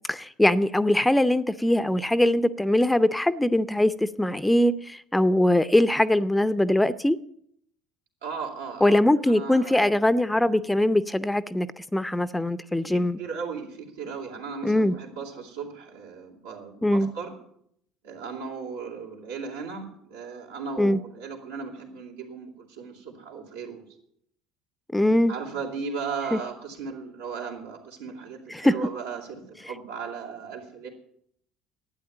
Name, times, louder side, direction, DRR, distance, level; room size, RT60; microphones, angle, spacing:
voice 1, 0.1-7.2 8.8-13.2 14.6-14.9 16.8-17.1 20.8-21.0 24.9-25.3 26.3-26.4 28.5-28.7, left 1 dB, 10° left, 14 dB, 0.6 m, -22 dB
voice 2, 8.2-9.9 12.8-17.3 18.0-23.8 25.3-30.9, right 5 dB, 80° right, -3 dB, 3.2 m, -36 dB
12.5 x 9.2 x 8.9 m, 0.70 s
hypercardioid pair, 60°, 0 cm